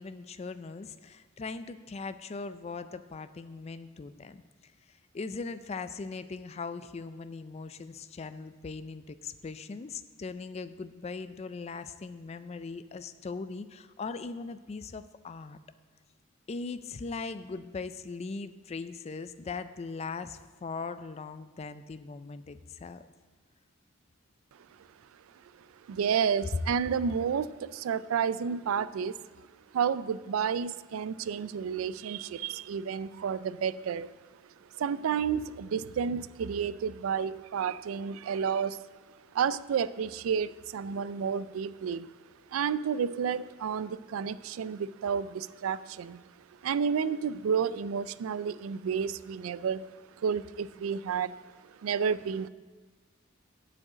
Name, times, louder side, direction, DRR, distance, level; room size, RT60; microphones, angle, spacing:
voice 1, 0.0-4.7 5.1-15.6 16.5-23.0, left 4 dB, 30° left, 12 dB, 0.3 m, -40 dB
voice 2, 25.9-29.5 29.7-34.1 34.7-38.8 39.3-42.1 42.5-46.2 46.6-49.9 50.2-51.4 51.8-52.5, right 7 dB, 80° right, 17 dB, 0.3 m, -31 dB
7.7 x 6.3 x 8.0 m, 1.4 s
head